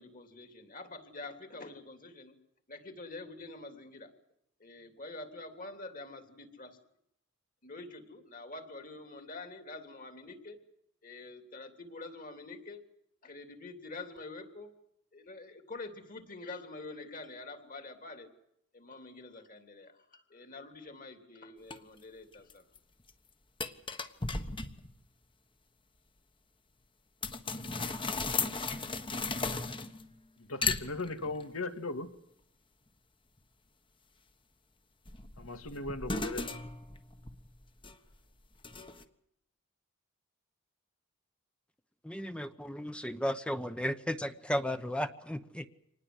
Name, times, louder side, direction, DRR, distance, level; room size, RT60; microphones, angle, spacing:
voice 1, 0.0-2.3 2.7-4.1 4.6-6.8 7.6-10.6 11.0-12.8 13.2-14.7 15.1-18.3 18.7-22.6, left 3 dB, 40° left, 7 dB, 3.2 m, -46 dB
sound 1, 21.7-21.8 22.3-22.8 23.1-23.2 23.6-25.0 27.2-30.2 30.6-31.4 35.1-38.2 38.6-39.0, left 4 dB, 25° left, 1.4 m, -36 dB
voice 2, 30.4-32.1 35.4-36.6, left 2 dB, 85° left, 8 dB, 2.3 m, -38 dB
voice 3, 42.0-45.7, equal, 5° left, 10 dB, 0.9 m, -34 dB
26.0 x 19.5 x 7.9 m, 0.76 s
head